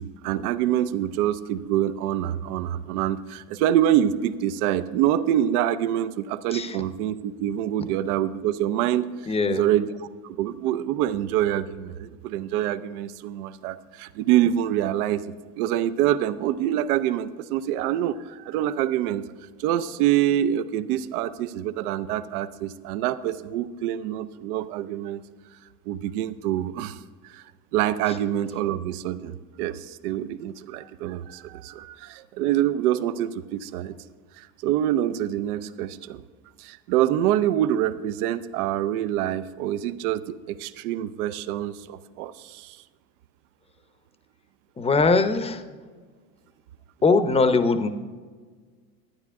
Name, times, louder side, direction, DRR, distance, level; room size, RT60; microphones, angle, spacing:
voice 1, 0.0-9.1 9.5-9.9 10.2-19.3 19.6-25.2 25.9-27.4 27.7-34.0 34.4-36.2 36.6-42.8, right 11 dB, 80° right, 14 dB, 0.6 m, -26 dB
voice 2, 9.2-9.6 28.1-28.2 44.8-45.6 47.0-47.9, left 4 dB, 15° left, 10 dB, 0.6 m, -21 dB
11.5 x 9.5 x 3.6 m, 1.5 s
supercardioid pair, 100°, 44 cm